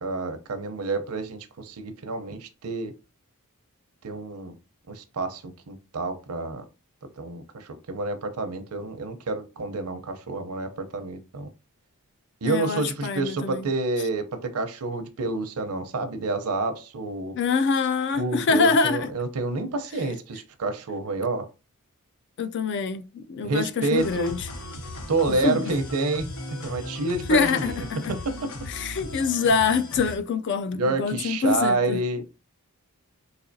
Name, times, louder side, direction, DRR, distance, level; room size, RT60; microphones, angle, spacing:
voice 1, 0.0-2.9 4.0-4.5 4.9-6.6 7.2-11.5 12.4-17.4 18.2-21.5 23.4-24.3 25.1-26.3 26.6-28.5 30.7-32.2, right 3 dB, 80° right, 0.7 m, -28 dB
voice 2, 12.4-13.7 17.4-19.1 22.4-24.4 25.4-25.7 27.3-28.1 28.7-32.0, left 5 dB, 50° left, 0.4 m, -25 dB
sound 1, 24.0-30.2, left 1 dB, 75° left, 0.8 m, -37 dB
4.1 x 2.8 x 2.6 m
head